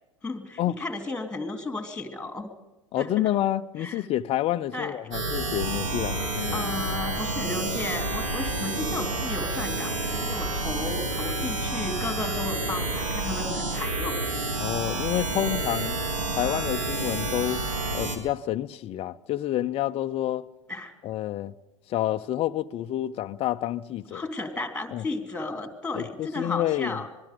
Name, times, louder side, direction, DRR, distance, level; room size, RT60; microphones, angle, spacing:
voice 1, 0.2-2.5 3.0-3.1 3.8-4.0 4.7-5.0 6.5-14.2 20.7-20.9 24.1-27.1, left 3 dB, 5° left, 3.1 m, -34 dB
voice 2, 2.9-6.7 14.6-16.0 16.4-17.6 17.9-20.5 21.0-21.5 21.9-24.3 24.9-25.0 25.9-27.0, left 13 dB, 35° left, 0.7 m, -28 dB
sound 1, 5.1-18.2, right 2 dB, 70° right, 3.1 m, -29 dB
26.0 x 21.0 x 5.2 m
hypercardioid pair, 85°, 17 cm